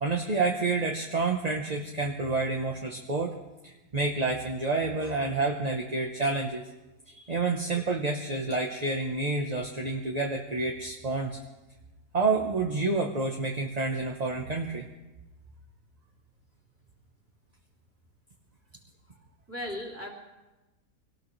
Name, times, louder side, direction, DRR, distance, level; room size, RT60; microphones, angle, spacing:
voice 1, 0.0-3.3 3.6-6.7 7.3-11.4 12.1-14.8, right 3 dB, 30° right, 1 dB, 0.9 m, -29 dB
voice 2, 7.1-7.6 19.5-20.1, left 1 dB, 10° right, -2 dB, 3.0 m, -38 dB
24.0 x 18.5 x 3.3 m, 1.1 s
omnidirectional pair, 1.8 m